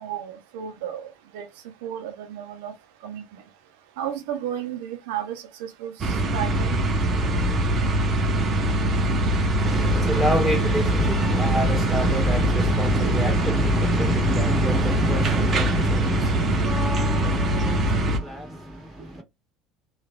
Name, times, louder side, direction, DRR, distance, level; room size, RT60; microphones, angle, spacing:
voice 1, 0.0-1.5 1.8-2.7 3.0-3.4 4.0-6.7 12.9-13.3 14.3-14.5, right 9 dB, 80° right, 0.5 m, -33 dB
sound 1, 6.0-18.2, right 1 dB, 40° right, 0.7 m, -23 dB
voice 2, 9.6-19.2, equal, ahead, 1.6 m, -27 dB
3.0 x 2.3 x 2.2 m
hypercardioid pair, 75°, 0 cm